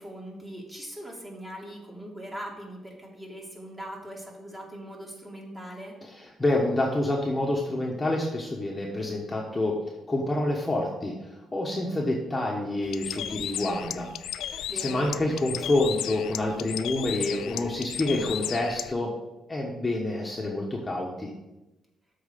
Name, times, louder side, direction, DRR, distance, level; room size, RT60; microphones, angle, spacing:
voice 1, 0.0-6.0 14.7-15.0, right 1 dB, 15° right, -2 dB, 2.4 m, -41 dB
voice 2, 6.1-9.7 10.1-14.1 14.4-19.1 19.5-21.3, left 1 dB, 15° left, -2 dB, 1.3 m, -28 dB
Bird, 12.8-18.9, left 11 dB, 80° left, 0.3 m, -35 dB
7.2 x 4.7 x 6.5 m, 1.0 s
cardioid pair, 90°, 0 cm